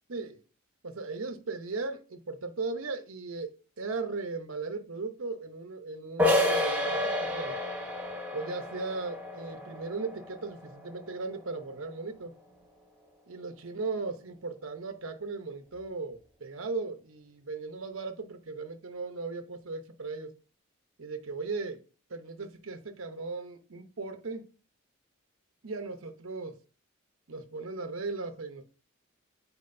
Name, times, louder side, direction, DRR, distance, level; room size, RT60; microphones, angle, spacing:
voice 1, 0.1-0.4 0.8-7.6 8.3-12.3 13.3-20.3 21.0-21.8 22.1-24.5 25.6-26.6 27.3-28.6, right 3 dB, 75° right, 0.9 m, -37 dB
sound 1, 6.2-11.7, left 1 dB, 10° right, 1.4 m, -30 dB
8.6 x 4.6 x 2.7 m
head